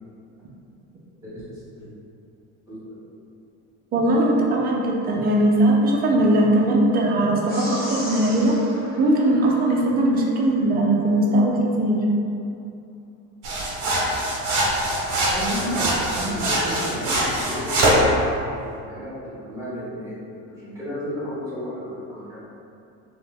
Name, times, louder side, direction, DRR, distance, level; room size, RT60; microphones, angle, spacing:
voice 1, 3.9-8.5 9.0-12.0, right 1 dB, 30° right, -2 dB, 0.5 m, -19 dB
sound 1, 7.5-10.1, equal, 30° left, 0.8 m, -37 dB
sound 2, 13.4-18.1, right 1 dB, 60° right, 0.9 m, -23 dB
voice 2, 15.3-18.1 18.8-20.2 20.6-22.4, equal, 10° right, -12 dB, 1.0 m, -32 dB
3.0 x 2.1 x 3.4 m, 2.6 s
cardioid pair, 130°, 32 cm